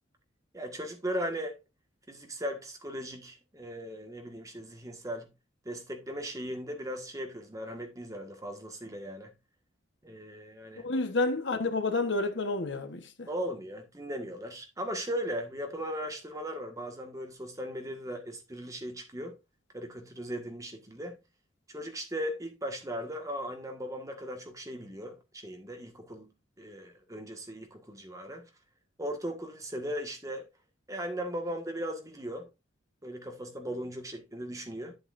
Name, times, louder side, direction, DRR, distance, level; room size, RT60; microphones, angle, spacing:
voice 1, 0.5-1.6 2.1-5.3 5.6-9.3 10.0-10.9 13.3-19.3 19.7-21.2 21.7-26.3 26.6-28.4 29.0-30.5 30.9-32.5 33.0-34.9, equal, 15° right, 1.6 m, -38 dB
voice 2, 10.8-13.3, left 3 dB, 65° left, 1.2 m, -29 dB
9.1 x 7.9 x 2.6 m
head